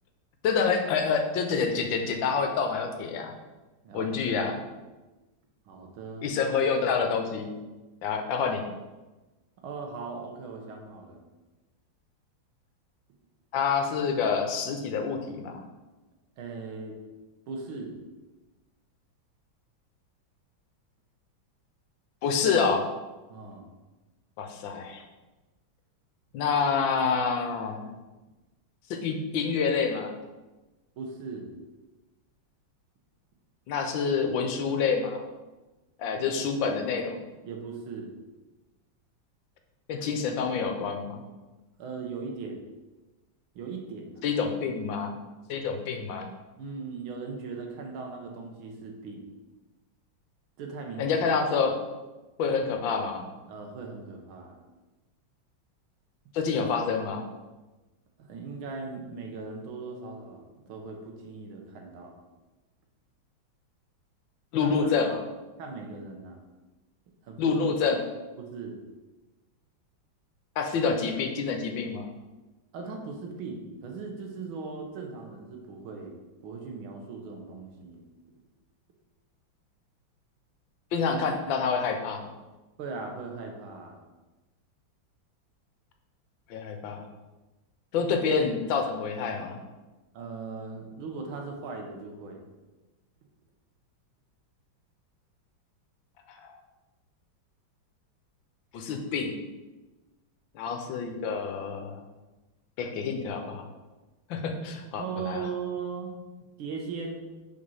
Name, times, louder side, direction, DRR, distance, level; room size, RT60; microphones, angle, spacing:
voice 1, 0.4-3.3 3.9-4.6 6.2-7.5 8.0-8.6 13.5-15.6 22.2-22.9 24.4-25.0 26.3-27.9 28.9-30.1 33.7-35.2 36.0-37.2 39.9-41.2 44.2-45.1 45.5-46.3 51.0-51.8 52.4-53.3 56.3-57.3 64.5-65.2 67.4-68.0 70.6-72.1 80.9-82.3 86.5-87.1 87.9-89.6 96.3-96.6 98.7-99.3 100.5-102.0 102.8-103.6 104.3-105.5, left 5 dB, 75° left, 5 dB, 1.5 m, -27 dB
voice 2, 3.8-4.4 5.7-6.3 9.6-11.2 16.4-17.0 17.5-17.9 23.3-23.7 31.0-31.5 36.3-36.8 37.4-38.1 41.8-42.6 43.6-44.2 46.6-49.3 50.6-51.2 53.5-54.6 58.2-62.2 64.6-64.9 65.6-66.4 67.2-67.5 68.4-68.8 72.7-78.0 82.8-84.0 90.1-92.4 101.1-101.3 105.0-106.1 106.6-107.2, right 4 dB, 90° right, 2 dB, 1.7 m, -39 dB
5.2 x 4.4 x 5.5 m, 1.1 s
omnidirectional pair, 2.2 m